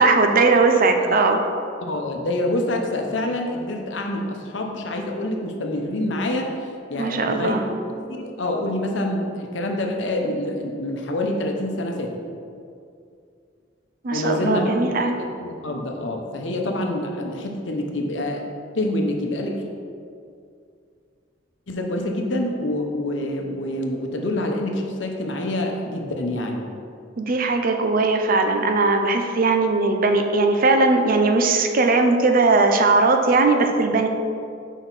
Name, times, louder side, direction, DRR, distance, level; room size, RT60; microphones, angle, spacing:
voice 1, 0.0-1.4 7.0-7.6 14.0-15.1 27.2-34.1, right 3 dB, 50° right, 5 dB, 0.5 m, -19 dB
voice 2, 1.8-7.6 8.1-12.2 14.1-14.9 15.2-18.4 18.7-19.7 21.7-26.6, left 1 dB, 75° left, 2 dB, 0.8 m, -26 dB
6.2 x 5.0 x 4.1 m, 2.4 s
head